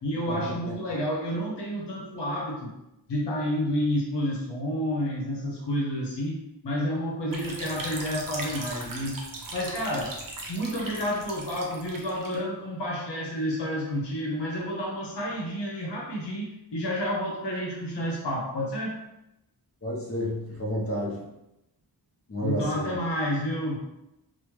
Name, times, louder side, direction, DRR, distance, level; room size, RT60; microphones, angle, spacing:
voice 1, 0.0-2.7 3.1-6.4 6.6-9.2 9.5-10.1 10.5-19.0 22.4-23.8, equal, 80° left, -3 dB, 0.8 m, -30 dB
sound 1, 7.3-12.4, right 2 dB, 55° right, 0.6 m, -39 dB
voice 2, 19.8-21.2 22.3-23.0, equal, 35° left, -3 dB, 0.6 m, -31 dB
3.1 x 2.0 x 3.1 m, 0.90 s
wide cardioid pair, 110°, 41 cm